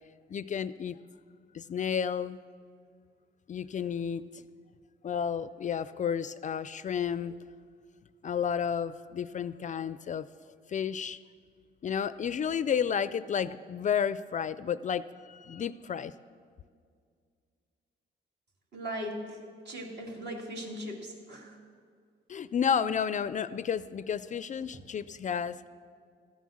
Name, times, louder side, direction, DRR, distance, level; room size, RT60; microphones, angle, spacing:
voice 1, 0.3-1.0 1.5-2.4 3.5-4.4 5.0-7.3 8.2-10.3 10.7-11.2 11.8-16.1 22.3-25.7, left 7 dB, 40° left, 15 dB, 0.4 m, -31 dB
voice 2, 18.7-21.6, equal, 60° right, 0 dB, 2.5 m, -39 dB
14.5 x 9.2 x 6.4 m, 2.1 s
cardioid pair, 90°, 20 cm